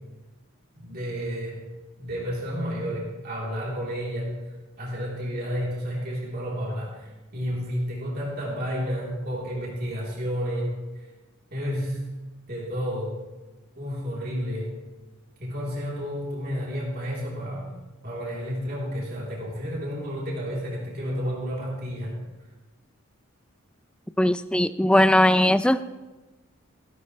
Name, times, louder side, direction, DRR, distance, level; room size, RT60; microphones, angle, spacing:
voice 1, 0.7-1.6 2.0-4.4 4.8-11.1 11.5-12.1 12.5-13.2 13.8-14.7 15.4-17.7 18.0-22.2, equal, 45° right, -4 dB, 3.6 m, -31 dB
voice 2, 24.2-25.8, left 1 dB, 5° left, 13 dB, 0.3 m, -19 dB
16.5 x 12.5 x 3.3 m, 1.2 s
head